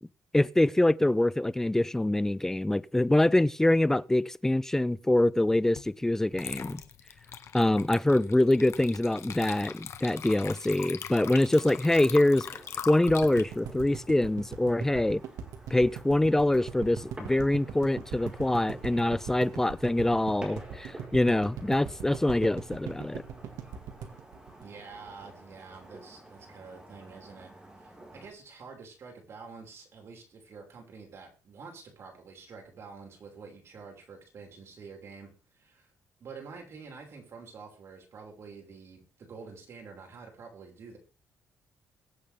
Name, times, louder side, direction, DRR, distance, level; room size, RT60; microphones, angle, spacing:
voice 1, 0.3-6.8 7.5-12.5 12.9-15.2 15.7-23.2, left 1 dB, 10° left, 0.5 m, -25 dB
Water / Liquid, 5.8-5.9 6.3-14.9, left 8 dB, 60° left, 1.4 m, -41 dB
sound 1, 11.4-28.3, right 1 dB, 15° right, 5.0 m, -51 dB
sound 2, 13.1-25.2 25.5-25.6 25.8-25.9, right 7 dB, 85° right, 1.9 m, -40 dB
voice 2, 24.5-27.5 27.8-35.9 36.2-41.0, right 5 dB, 55° right, 5.8 m, -48 dB
22.0 x 8.5 x 3.6 m
cardioid pair, 115°, 6 cm